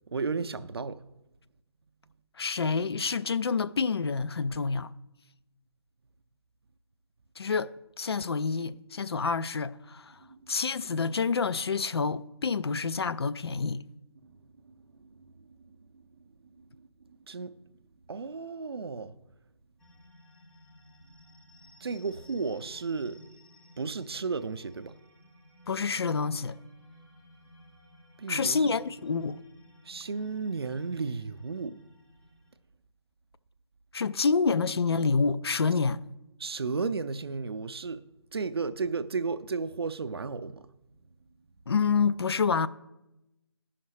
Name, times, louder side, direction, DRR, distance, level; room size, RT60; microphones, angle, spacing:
voice 1, 0.1-1.0 10.3-10.4 14.2-14.3 15.0-15.2 17.3-17.6 18.1-19.2 21.8-23.2 23.8-24.9 28.2-28.8 29.9-31.8 36.4-38.0 38.3-40.7, right 4 dB, 60° right, 0.5 m, -33 dB
voice 2, 2.4-4.9 7.4-7.7 8.0-10.2 10.5-13.8 25.7-26.5 28.3-29.4 33.9-36.0 41.7-42.7, left 5 dB, 65° left, 0.4 m, -28 dB
sound 1, 19.8-32.6, left 1 dB, 5° left, 0.6 m, -56 dB
14.5 x 5.7 x 3.2 m
figure-of-eight pair, 140°, 14 cm